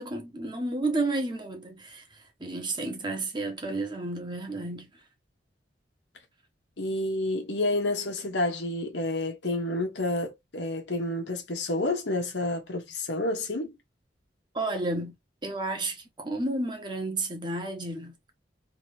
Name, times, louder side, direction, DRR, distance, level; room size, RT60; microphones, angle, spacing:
voice 1, 0.0-2.0 2.4-4.9 14.5-15.1 15.4-18.3, right 2 dB, 25° right, 1.2 m, -31 dB
voice 2, 6.8-13.7, left 2 dB, 80° left, 1.3 m, -29 dB
3.6 x 3.0 x 3.4 m
head